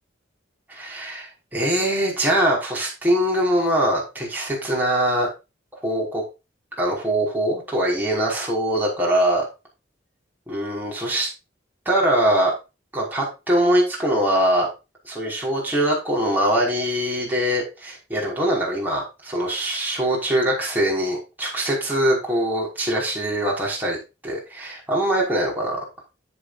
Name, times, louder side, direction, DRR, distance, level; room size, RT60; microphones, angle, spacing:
voice 1, 0.7-5.3 5.8-6.2 6.8-9.4 10.5-11.3 11.9-12.5 12.9-14.7 15.0-24.0 24.2-25.8, right 1 dB, 10° right, -3 dB, 5.6 m, -22 dB
11.0 x 9.6 x 2.7 m, 0.27 s
head